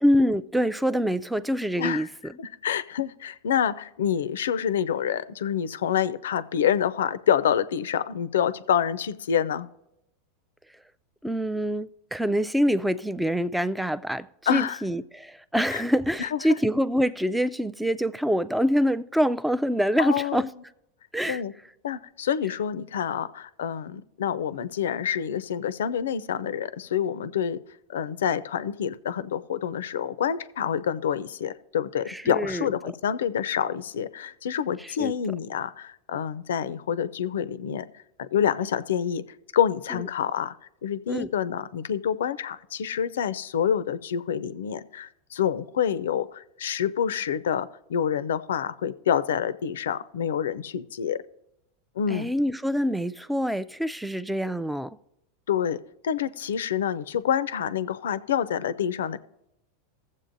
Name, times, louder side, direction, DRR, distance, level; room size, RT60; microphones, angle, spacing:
voice 1, 0.0-2.1 11.2-20.5 21.1-21.4 32.1-32.7 35.0-35.1 39.9-40.0 41.1-41.3 52.1-55.0, equal, 5° right, 0.3 m, -25 dB
voice 2, 2.4-9.7 14.5-14.8 15.7-15.8 16.2-16.4 20.0-20.5 21.3-21.5 21.8-27.6 27.9-37.9 38.2-39.2 39.5-40.5 40.8-51.2 52.0-52.3 55.5-55.8 56.0-59.2, left 8 dB, 85° left, 0.4 m, -27 dB
16.5 x 7.4 x 2.6 m
hypercardioid pair, 115°, 0 cm